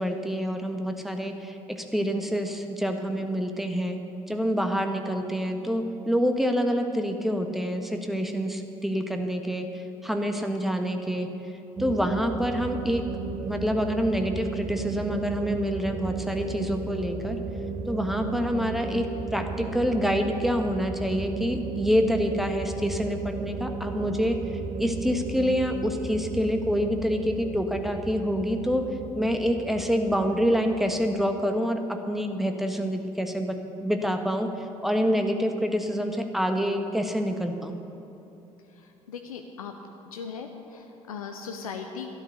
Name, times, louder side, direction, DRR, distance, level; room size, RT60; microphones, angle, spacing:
voice 1, 0.0-4.0 4.3-11.3 11.8-13.1 13.4-17.4 17.9-19.1 19.3-28.8 29.1-37.7, equal, ahead, 5 dB, 1.4 m, -27 dB
sound 1, 11.8-31.3, right 4 dB, 40° right, 1.1 m, -35 dB
voice 2, 38.7-39.8 40.1-42.1, left 6 dB, 80° left, 5 dB, 0.7 m, -38 dB
12.0 x 11.0 x 6.6 m, 2.9 s
figure-of-eight pair, 50°, 18 cm